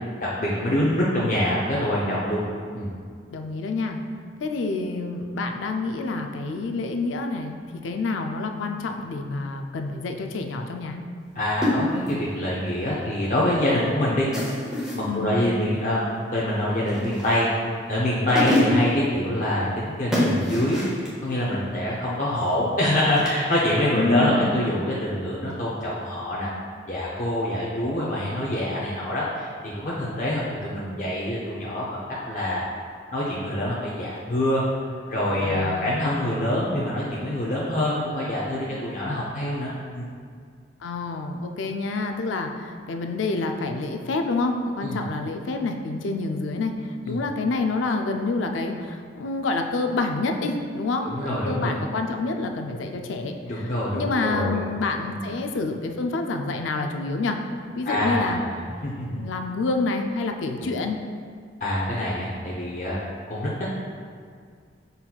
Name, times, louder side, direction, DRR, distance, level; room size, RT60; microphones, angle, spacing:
voice 1, 0.2-2.4 2.7-2.9 11.3-14.3 14.9-16.0 16.3-17.5 17.9-20.8 21.2-26.5 26.9-32.0 32.3-32.7 33.1-34.6 35.1-40.1 44.8-45.0 47.1-47.2 51.0-51.8 53.4-54.6 55.0-55.2 57.9-58.5 58.8-59.2 60.6-60.7 61.6-63.0 63.3-63.8, left 1 dB, 40° left, -7 dB, 0.6 m, -25 dB
voice 2, 3.3-4.0 4.4-7.6 7.8-11.0 15.1-15.4 23.9-24.5 35.4-36.0 40.8-46.7 47.1-57.4 57.8-58.4 59.0-61.0, left 3 dB, 90° left, 5 dB, 0.4 m, -28 dB
sound 1, 11.6-12.2 14.3-15.1 16.9-17.5 18.0-18.1 18.4-19.0 20.1-21.1 23.2-23.4, left 1 dB, 5° right, 0.8 m, -25 dB
5.7 x 4.0 x 2.3 m, 2.1 s
head